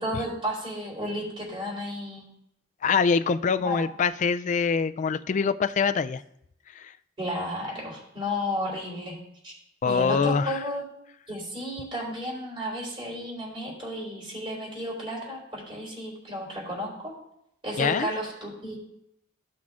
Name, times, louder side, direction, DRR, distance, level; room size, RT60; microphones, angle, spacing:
voice 1, 0.0-2.3 3.6-3.8 7.2-9.2 9.4-9.5 9.8-10.8 11.3-17.1 17.6-18.8, equal, 30° right, -4 dB, 3.5 m, -33 dB
voice 2, 2.8-6.2 6.7-6.9 9.8-10.6 17.8-18.1, left 5 dB, 40° left, 12 dB, 0.3 m, -24 dB
14.5 x 6.0 x 2.5 m, 0.77 s
head